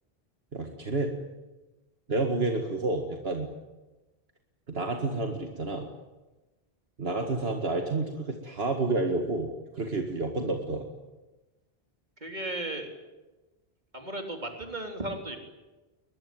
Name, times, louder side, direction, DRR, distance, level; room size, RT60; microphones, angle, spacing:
voice 1, 0.5-1.2 2.1-3.5 4.7-5.9 7.0-9.5 9.7-10.9, right 3 dB, 70° right, 3 dB, 2.2 m, -29 dB
voice 2, 12.2-12.9 13.9-15.4, right 1 dB, 45° right, 3 dB, 4.0 m, -35 dB
22.0 x 21.5 x 9.5 m, 1.1 s
omnidirectional pair, 1.1 m